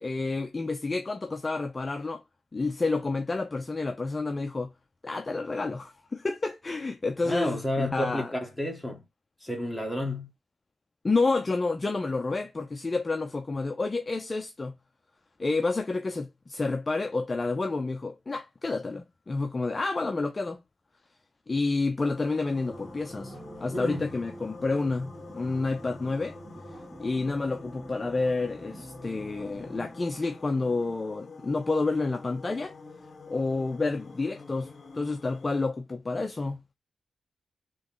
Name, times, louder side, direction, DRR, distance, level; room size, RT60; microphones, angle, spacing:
voice 1, 0.0-2.2 2.5-4.7 5.0-8.3 11.0-14.8 15.4-20.6 21.5-26.4 27.0-32.7 33.3-36.6, left 3 dB, 30° left, 0.5 m, -29 dB
voice 2, 7.2-9.1 9.4-10.3 23.7-24.0, left 1 dB, 5° left, 1.6 m, -31 dB
sound 1, 22.0-35.7, left 3 dB, 50° left, 1.0 m, -48 dB
sound 2, 22.7-30.9, equal, 20° right, 2.0 m, -46 dB
3.8 x 3.0 x 3.6 m
wide cardioid pair, 135°, 0 cm